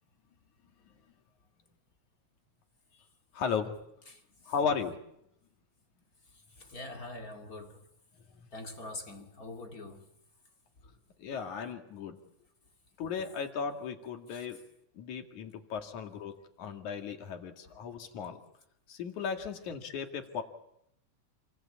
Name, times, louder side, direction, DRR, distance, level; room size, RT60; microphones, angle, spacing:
voice 1, 3.3-3.7 4.5-5.0 11.2-12.2 13.0-14.6 15.0-18.4 18.9-20.4, left 6 dB, 85° left, 3.6 m, -35 dB
voice 2, 4.1-4.5 6.3-7.9 8.5-10.1 10.8-11.0 14.3-14.6 17.6-17.8, left 2 dB, 30° left, 2.4 m, -45 dB
29.0 x 21.5 x 8.6 m
omnidirectional pair, 3.3 m